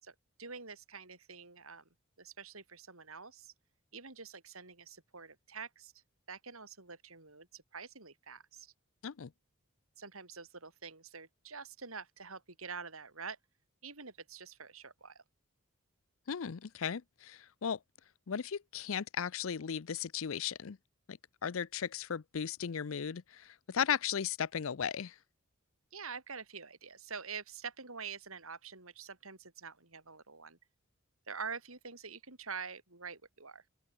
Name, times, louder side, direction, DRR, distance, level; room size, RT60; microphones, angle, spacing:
voice 1, 0.0-1.8 2.2-3.5 3.9-5.9 6.3-8.7 10.0-13.4 13.8-15.2 25.9-30.6 31.3-33.6, right 5 dB, 85° right, 6.4 m, -46 dB
voice 2, 16.3-17.8 18.3-20.8 21.1-25.1, left 7 dB, 70° left, 0.5 m, -36 dB
open air
head